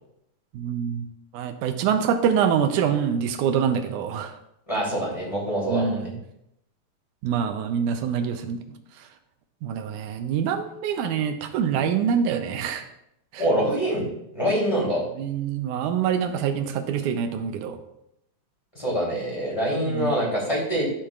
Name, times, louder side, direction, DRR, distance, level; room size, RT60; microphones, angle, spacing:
voice 1, 0.5-1.1 1.3-4.3 5.7-6.2 7.2-8.6 9.6-12.9 13.3-13.4 15.2-17.8 19.8-20.1, right 7 dB, 75° right, 7 dB, 2.0 m, -25 dB
voice 2, 4.7-5.9 13.4-14.0 14.3-15.0 18.7-20.8, right 1 dB, 10° left, -5 dB, 2.9 m, -25 dB
12.5 x 7.3 x 2.4 m, 0.80 s
omnidirectional pair, 4.0 m